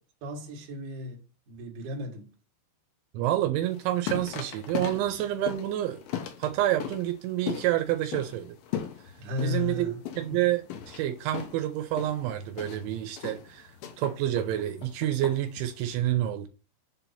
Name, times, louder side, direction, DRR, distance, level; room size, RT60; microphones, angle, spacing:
voice 1, 0.2-2.3 9.2-10.0 10.3-10.4, left 2 dB, 60° right, 2.5 m, -35 dB
voice 2, 3.1-6.0 6.4-8.6 9.4-16.5, right 13 dB, 85° right, 3.0 m, -28 dB
sound 1, 3.6-15.9, left 9 dB, 75° left, 2.4 m, -39 dB
7.5 x 2.9 x 5.5 m
omnidirectional pair, 5.4 m